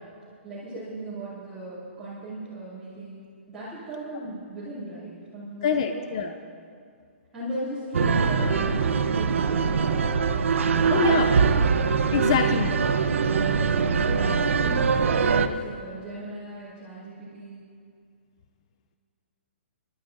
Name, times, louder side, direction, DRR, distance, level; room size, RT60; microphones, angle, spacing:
voice 1, 0.4-3.2 3.5-6.3 7.3-10.1 10.8-11.6 12.5-12.6 13.1-13.6 14.0-17.6, right 1 dB, 10° right, -14 dB, 2.4 m, -37 dB
voice 2, 5.6-6.3 10.9-11.3 12.1-12.7, left 7 dB, 25° left, 7 dB, 0.3 m, -24 dB
sound 1, 7.9-15.5, right 5 dB, 85° right, 0.7 m, -23 dB
29.5 x 11.5 x 2.6 m, 2.3 s
hypercardioid pair, 180°, 7 cm